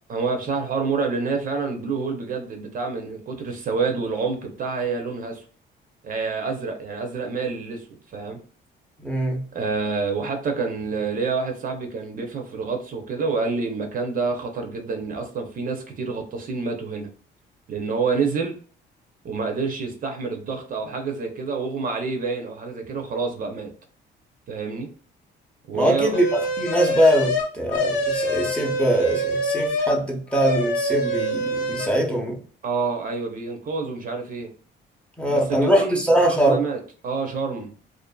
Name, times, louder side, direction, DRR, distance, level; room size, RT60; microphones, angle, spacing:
voice 1, 0.1-5.4 6.0-8.4 9.5-17.1 17.7-18.5 19.2-23.7 24.5-24.9 25.7-26.2 32.6-34.5 35.3-37.8, right 4 dB, 45° right, 0.5 m, -28 dB
voice 2, 9.0-9.4 25.7-26.3 26.6-32.4 35.2-36.6, equal, 5° left, 0.6 m, -22 dB
sound 1, 26.1-30.0 30.3-31.9, equal, 75° left, 0.6 m, -25 dB
2.5 x 2.4 x 2.2 m
cardioid pair, 105°, 19 cm